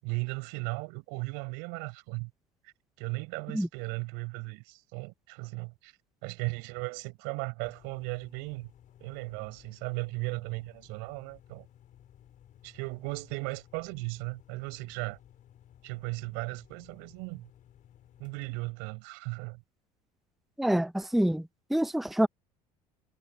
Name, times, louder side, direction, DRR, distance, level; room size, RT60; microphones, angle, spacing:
voice 1, 0.0-2.3 2.6-5.9 6.2-8.7 9.0-11.7 12.6-15.2 15.8-17.5 18.2-19.6, right 35 dB, 55° right, 6.9 m, -37 dB
sound 1, 7.6-18.7, left 11 dB, 40° left, 4.4 m, -57 dB
voice 2, 20.6-22.3, right 1 dB, ahead, 0.9 m, -27 dB
figure-of-eight pair, 65°, 20 cm